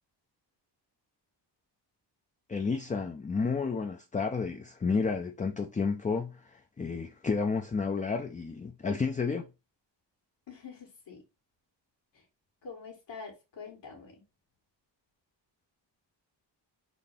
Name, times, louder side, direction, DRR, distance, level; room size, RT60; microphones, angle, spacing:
voice 1, 2.5-9.5, left 4 dB, 20° left, 0.4 m, -31 dB
voice 2, 10.5-11.2 12.6-14.2, left 5 dB, 75° left, 1.8 m, -46 dB
4.1 x 2.7 x 3.4 m
wide cardioid pair, 115°, 44 cm